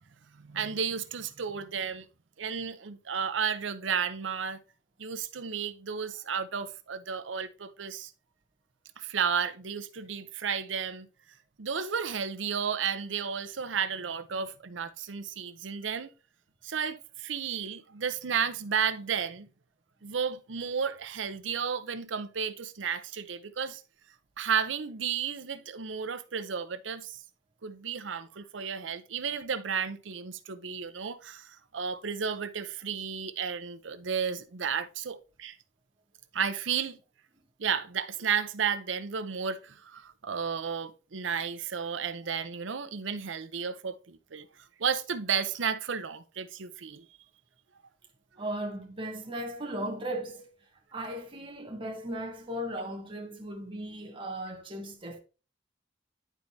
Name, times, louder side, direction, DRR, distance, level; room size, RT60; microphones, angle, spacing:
voice 1, 0.3-2.1 2.4-4.6 5.0-8.1 9.0-11.1 11.6-16.1 16.6-19.5 20.0-23.8 24.4-27.2 27.6-35.6 36.3-37.0 37.6-44.5 44.8-47.0, right 6 dB, 75° right, 0.7 m, -33 dB
voice 2, 48.4-50.5 50.9-55.2, right 1 dB, 25° right, 1.1 m, -37 dB
11.0 x 4.6 x 2.7 m
head